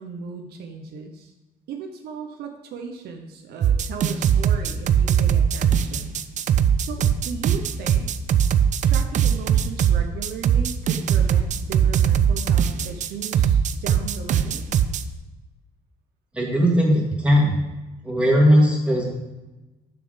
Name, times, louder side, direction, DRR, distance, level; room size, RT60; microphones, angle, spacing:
voice 1, 0.0-1.3 1.7-6.1 6.8-8.1 8.9-14.6, right 6 dB, 70° right, 4 dB, 0.8 m, -36 dB
sound 1, 3.6-15.0, right 8 dB, 45° right, 0.5 m, -20 dB
voice 2, 16.3-17.5 18.0-19.0, equal, 5° right, -3 dB, 2.3 m, -18 dB
6.8 x 6.1 x 5.1 m, 1.1 s
cardioid pair, 110°, 17 cm